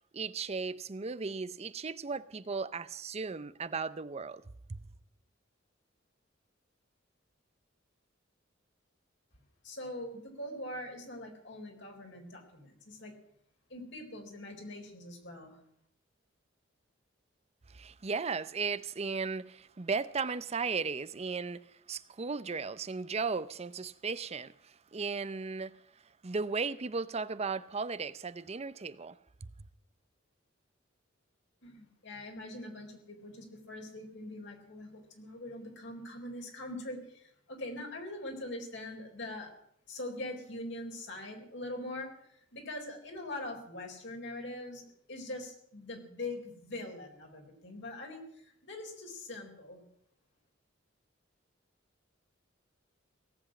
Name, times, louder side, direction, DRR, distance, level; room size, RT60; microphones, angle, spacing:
voice 1, 0.1-4.4 4.7-4.8 17.7-25.8 26.2-29.2, right 4 dB, 35° right, 0.5 m, -36 dB
voice 2, 9.6-13.1 13.7-15.6 31.6-39.5 39.9-49.8, left 1 dB, 65° left, 4.1 m, -43 dB
18.0 x 8.0 x 9.9 m
head